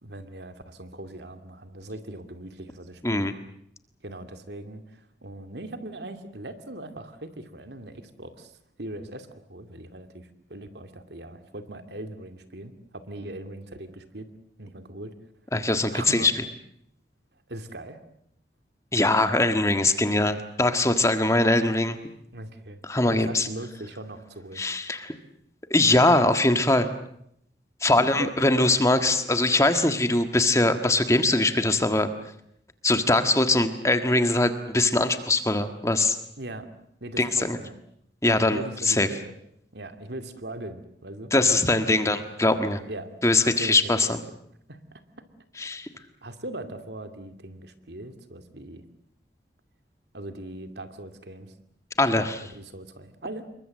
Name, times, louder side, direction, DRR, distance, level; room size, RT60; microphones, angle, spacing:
voice 1, 0.0-3.3 4.0-14.3 14.6-15.1 15.9-16.3 17.5-18.0 22.3-24.6 27.9-28.5 36.4-36.7 37.0-37.8 38.4-39.3 39.7-42.2 42.9-43.1 43.4-43.9 44.7-45.0 46.2-48.8 50.1-51.6 52.5-53.5, right 1 dB, 70° right, 8 dB, 2.4 m, -40 dB
voice 2, 15.5-16.3 18.9-22.0 22.9-23.5 24.6-25.1 25.7-26.9 27.8-32.1 32.8-36.2 37.2-37.6 38.2-38.6 38.9-39.1 41.3-42.8 43.2-44.2 45.6-45.9 52.0-52.4, left 2 dB, 15° left, 8 dB, 1.6 m, -22 dB
27.0 x 23.0 x 7.7 m, 0.73 s
head